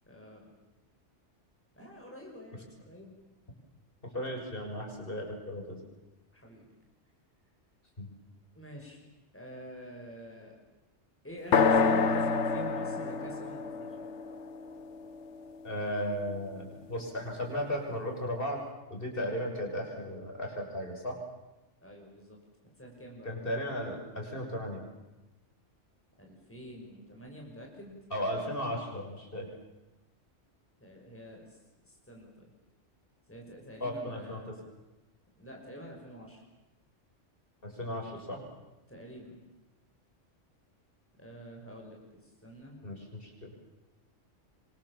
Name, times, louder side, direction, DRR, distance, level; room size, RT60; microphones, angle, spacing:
voice 1, 0.1-0.5 1.8-3.1 6.3-6.7 8.5-9.1 9.3-10.6 11.2-14.1 21.8-22.4 22.8-23.3 26.2-28.0 30.8-31.5 31.8-32.5 33.3-34.4 35.4-36.4 38.9-39.4 41.2-42.0 42.4-42.8, equal, 10° left, -1 dB, 5.8 m, -47 dB
voice 2, 4.1-5.8 8.0-8.1 15.6-18.6 18.9-21.2 23.2-24.8 28.1-29.5 33.8-34.5 37.6-38.4 42.8-43.5, equal, 50° left, 2 dB, 6.6 m, -35 dB
sound 1, 11.5-15.4, left 4 dB, 70° left, 1.5 m, -28 dB
27.5 x 24.5 x 7.3 m, 1.1 s
omnidirectional pair, 1.2 m